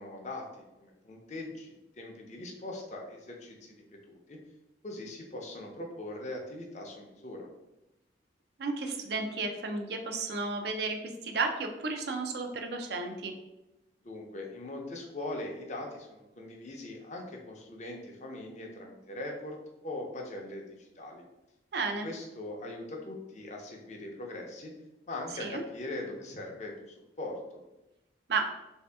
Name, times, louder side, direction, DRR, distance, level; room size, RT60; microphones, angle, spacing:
voice 1, 0.0-3.7 4.1-4.4 4.8-7.5 14.0-21.2 22.0-24.7 25.1-27.4, left 2 dB, 40° left, 1 dB, 0.6 m, -41 dB
voice 2, 8.6-11.0 11.2-13.3 21.7-22.1 25.4-25.6 28.3-28.4, right 3 dB, 65° right, 5 dB, 0.4 m, -32 dB
3.3 x 2.7 x 3.4 m, 0.96 s
head